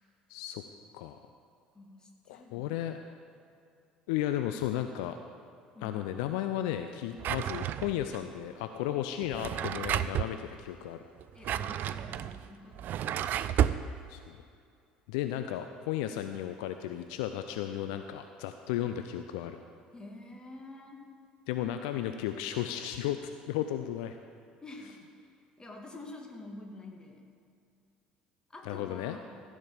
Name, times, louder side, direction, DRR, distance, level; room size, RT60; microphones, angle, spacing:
voice 1, 0.3-0.6 0.9-1.2 2.3-3.0 4.1-5.2 5.8-11.0 14.1-14.4 15.1-19.6 21.5-23.2 23.5-24.2 28.6-29.2, left 12 dB, 65° left, 8 dB, 0.4 m, -34 dB
voice 2, 1.7-2.7 5.7-6.0 11.3-13.1 19.9-21.1 24.6-25.3 25.6-27.3 28.5-29.4, left 2 dB, 20° left, 1 dB, 2.0 m, -48 dB
Drawer open or close, 7.2-8.2 9.2-10.3 11.2-13.8, right 10 dB, 50° right, 0.4 m, -31 dB
14.5 x 5.1 x 7.6 m, 2.4 s
figure-of-eight pair, 60°, 4 cm